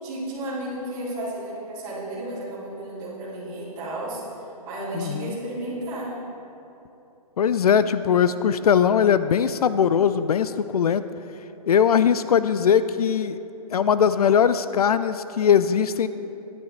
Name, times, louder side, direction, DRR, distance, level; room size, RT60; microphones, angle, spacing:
voice 1, 0.0-4.2 4.7-6.1, right 1 dB, 20° right, -7 dB, 2.5 m, -33 dB
voice 2, 4.9-5.4 7.4-11.0 11.7-13.4 13.7-16.1, left 8 dB, 70° left, 13 dB, 0.4 m, -20 dB
12.5 x 10.5 x 3.3 m, 2.9 s
hypercardioid pair, 160°, 20 cm